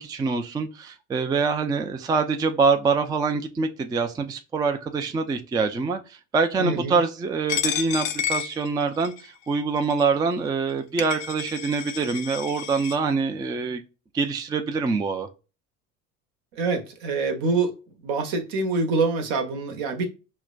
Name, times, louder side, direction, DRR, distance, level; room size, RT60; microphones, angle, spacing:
voice 1, 0.0-13.8 14.1-15.3, right 4 dB, 10° right, 0.3 m, -25 dB
voice 2, 6.6-7.0 16.5-17.7 18.0-20.1, right 3 dB, 65° right, 1.0 m, -25 dB
Coin (dropping), 7.5-9.3 9.9-10.0 10.7-10.8 11.0-13.0, left 9 dB, 70° left, 0.6 m, -30 dB
4.6 x 2.1 x 2.3 m
hypercardioid pair, 75°, 39 cm